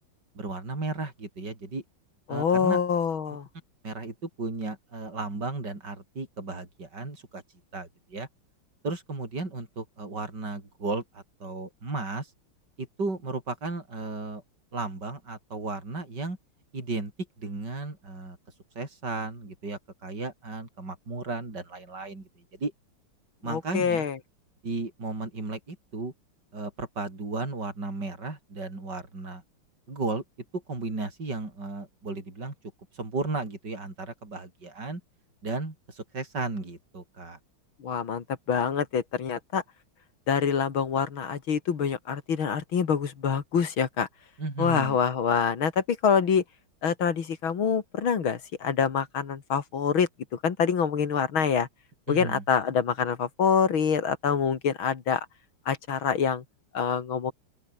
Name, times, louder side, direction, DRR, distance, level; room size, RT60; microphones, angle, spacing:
voice 1, 0.3-1.8 2.3-2.8 3.8-7.4 7.7-8.3 8.8-12.3 12.8-14.4 14.7-16.4 16.7-17.1 17.4-18.4 18.7-22.3 22.6-22.7 23.4-24.1 24.6-26.1 26.5-29.4 29.9-30.2 30.5-32.5 32.9-35.0 35.4-37.4 44.4-45.0 52.1-52.4, right 3 dB, 50° right, 6.3 m, -34 dB
voice 2, 2.3-3.5 23.4-24.2 37.8-39.6 40.3-44.1 44.6-46.4 46.8-51.7 52.1-55.3 55.7-56.4 56.7-57.3, left 6 dB, 70° left, 2.8 m, -26 dB
open air
omnidirectional pair, 2.3 m